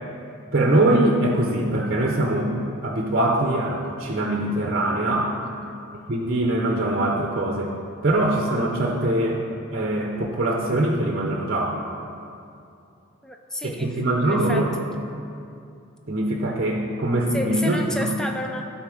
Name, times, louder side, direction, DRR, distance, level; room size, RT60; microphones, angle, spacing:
voice 1, 0.5-2.5 2.8-5.3 6.1-7.7 8.0-9.4 9.7-11.8 13.6-14.7 16.1-18.1, right 1 dB, 45° right, 0 dB, 0.8 m, -22 dB
voice 2, 5.4-5.9 9.0-9.2 13.2-13.9 14.2-14.7 17.3-18.6, left 1 dB, 5° left, 2 dB, 0.5 m, -31 dB
12.5 x 4.2 x 6.0 m, 2.5 s
head